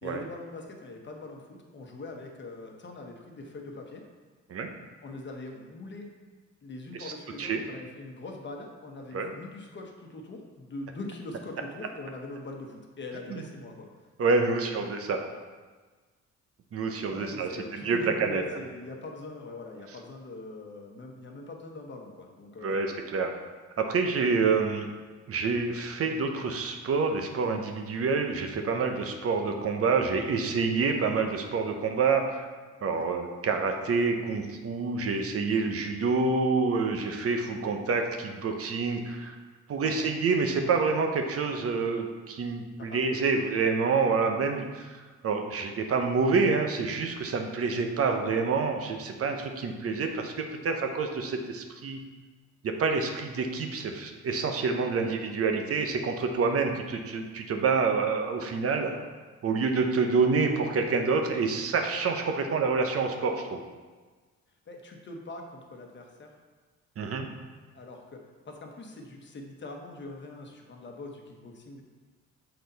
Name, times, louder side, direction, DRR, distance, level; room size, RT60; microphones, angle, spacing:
voice 1, 0.0-4.0 5.0-6.1 6.6-13.9 14.3-14.8 17.1-22.8 32.9-33.1 39.8-40.1 42.8-43.3 55.0-55.2 58.6-59.1 62.4-62.5 64.7-66.3 67.7-71.8, left 2 dB, 40° left, 1 dB, 1.1 m, -42 dB
voice 2, 14.2-15.2 16.7-18.4 22.6-23.3 23.8-24.9 25.3-32.5 32.8-39.4 39.7-44.9 45.2-52.0 52.6-58.9 59.4-63.6 67.0-67.3, right 4 dB, 50° right, 4 dB, 0.8 m, -27 dB
6.7 x 4.1 x 4.0 m, 1.4 s
cardioid pair, 90°, 30 cm